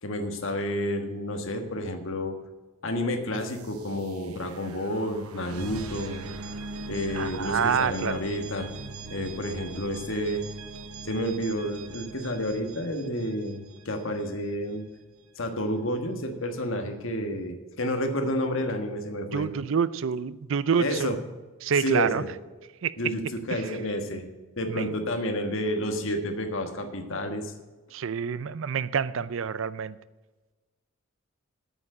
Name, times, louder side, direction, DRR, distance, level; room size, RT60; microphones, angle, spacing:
voice 1, 0.0-2.4 2.8-6.2 6.9-8.7 9.1-10.4 11.1-14.8 15.4-19.5 20.8-21.2 21.8-22.3 23.0-24.3 24.6-27.5, equal, 65° left, 6 dB, 1.4 m, -30 dB
sound 1, 3.4-14.2, right 3 dB, 85° right, 0.9 m, -41 dB
voice 2, 7.1-8.2 19.3-21.2 21.6-22.2 22.8-22.9 23.5-23.8 24.7-24.9 27.1-27.2 27.9-30.0, right 6 dB, 65° right, 17 dB, 0.4 m, -27 dB
8.7 x 6.8 x 8.7 m, 1.2 s
head